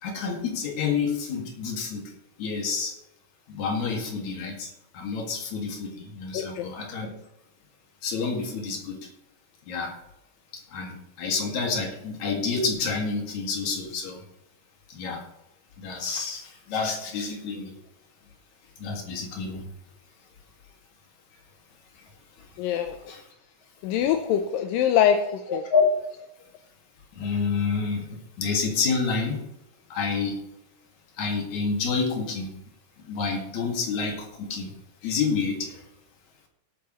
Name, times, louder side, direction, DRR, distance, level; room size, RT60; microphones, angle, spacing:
voice 1, 0.0-2.1 2.4-2.9 3.5-4.7 4.9-7.1 8.0-9.0 9.7-9.9 10.7-14.2 14.9-15.2 15.8-17.7 18.8-19.6 23.1-23.2 25.5-25.8 27.2-29.4 29.9-30.4 31.2-32.5 33.0-34.7 35.0-35.8, left 5 dB, 60° left, 1 dB, 3.2 m, -28 dB
voice 2, 6.3-6.7 22.6-23.0 23.8-25.6, left 9 dB, 85° left, 7 dB, 2.4 m, -24 dB
17.5 x 8.6 x 3.1 m, 0.83 s
omnidirectional pair, 4.0 m